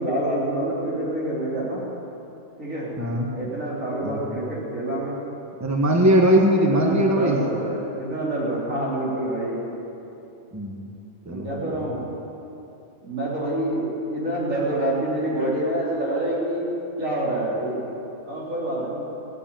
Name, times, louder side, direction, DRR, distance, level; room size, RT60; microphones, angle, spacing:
voice 1, 0.0-1.8 2.6-2.9 3.3-5.2 6.7-9.6 11.3-12.1 13.0-16.6 17.0-17.8 18.3-19.1, right 1 dB, 85° right, -6 dB, 4.3 m, -27 dB
voice 2, 3.0-3.3 4.0-4.3 5.6-7.4 10.5-10.8 11.2-11.9, equal, 15° right, 1 dB, 1.3 m, -20 dB
16.5 x 8.3 x 8.9 m, 2.8 s
omnidirectional pair, 1.3 m